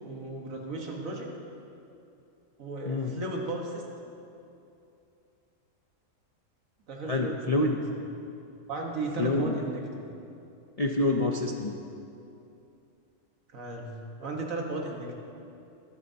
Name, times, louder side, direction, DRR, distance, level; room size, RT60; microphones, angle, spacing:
voice 1, 0.1-1.3 2.6-4.1 6.9-8.1 8.7-10.1 13.5-15.2, right 2 dB, 80° right, 0 dB, 1.8 m, -35 dB
voice 2, 7.1-7.8 9.2-9.5 10.8-11.8, left 2 dB, 50° left, 1 dB, 0.4 m, -27 dB
23.0 x 9.2 x 2.8 m, 2.7 s
omnidirectional pair, 1.4 m